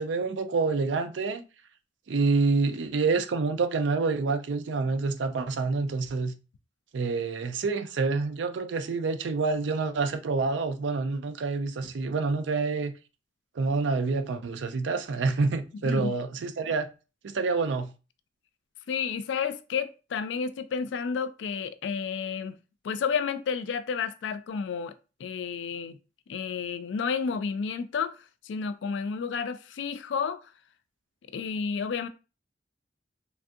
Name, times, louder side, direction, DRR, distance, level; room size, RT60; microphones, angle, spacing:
voice 1, 0.0-1.4 2.1-6.3 6.9-12.9 13.6-16.9 17.2-17.9, right 4 dB, 90° right, 0.4 m, -27 dB
voice 2, 15.8-16.1 18.9-22.6 22.8-26.0 26.3-28.2 28.4-30.4 31.3-32.1, left 6 dB, 85° left, 0.3 m, -31 dB
3.3 x 2.4 x 2.6 m
head